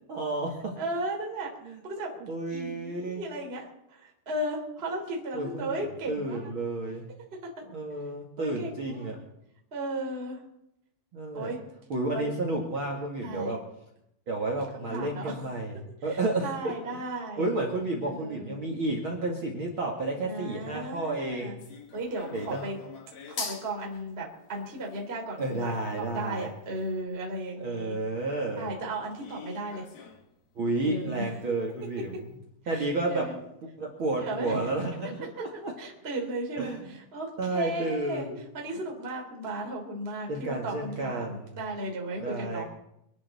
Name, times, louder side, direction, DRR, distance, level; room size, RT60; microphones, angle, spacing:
voice 1, 0.1-0.7 1.6-1.8 2.2-3.2 5.3-7.1 7.7-9.2 11.1-11.5 11.9-13.6 14.3-17.0 17.4-21.6 22.3-22.6 25.4-26.5 27.6-28.7 30.5-32.3 32.7-33.3 33.6-35.7 36.6-36.9 37.4-38.4 40.3-41.6 42.2-42.6, right 2 dB, 55° right, 1 dB, 1.4 m, -31 dB
voice 2, 0.8-1.5 1.8-2.1 2.5-6.5 8.4-9.1 9.7-10.4 11.3-11.6 12.1-12.3 13.2-13.6 14.5-15.4 16.1-17.5 18.0-18.6 20.2-21.6 21.9-22.8 23.3-28.0 28.6-29.8 30.8-31.2 32.7-33.4 34.2-34.7 35.8-36.7 37.1-38.3 38.5-42.6, right 1 dB, 15° right, -1 dB, 2.5 m, -35 dB
sound 1, 21.6-27.4 27.9-28.0 28.4-28.5 29.2-30.4 30.6-30.7 31.0-31.1 31.7-31.8 32.0-32.2, left 5 dB, 50° left, 2.1 m, -44 dB
25.0 x 11.0 x 4.2 m, 0.81 s
omnidirectional pair, 5.3 m